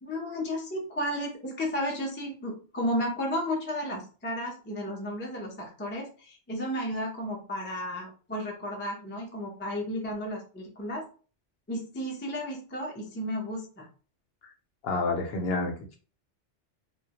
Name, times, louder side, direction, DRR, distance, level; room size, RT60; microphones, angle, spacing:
voice 1, 0.0-11.0 11.7-13.9, equal, 20° left, -1 dB, 0.3 m, -33 dB
voice 2, 14.8-16.0, left 3 dB, 65° left, 2 dB, 0.7 m, -29 dB
2.2 x 2.1 x 2.8 m, 0.37 s
omnidirectional pair, 1.2 m